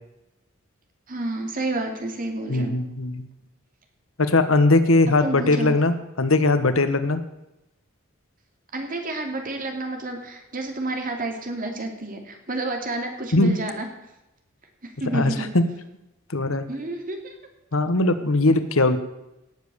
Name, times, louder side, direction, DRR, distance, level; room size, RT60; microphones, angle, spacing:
voice 1, 1.1-2.8 5.2-5.8 8.7-13.9 14.8-15.5 16.7-17.3, right 2 dB, 40° right, 4 dB, 2.7 m, -30 dB
voice 2, 2.5-3.3 4.2-7.2 13.3-13.6 15.1-15.7 16.3-16.6 17.7-19.0, left 2 dB, 70° left, 10 dB, 1.3 m, -20 dB
17.5 x 7.5 x 6.9 m, 0.92 s
head